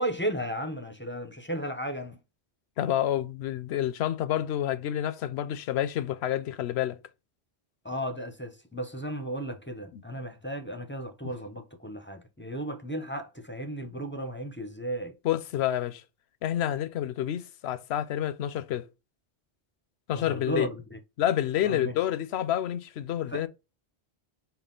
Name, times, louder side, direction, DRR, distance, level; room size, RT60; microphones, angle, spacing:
voice 1, 0.0-2.2 7.8-15.1 20.1-21.0 21.6-22.0 23.3-23.5, right 1 dB, 15° left, 0.5 m, -34 dB
voice 2, 2.8-7.0 9.9-10.0 15.2-16.0 16.4-18.9 20.1-20.7 21.2-23.5, left 11 dB, 80° left, 0.8 m, -28 dB
5.5 x 2.4 x 3.8 m
omnidirectional pair, 1.1 m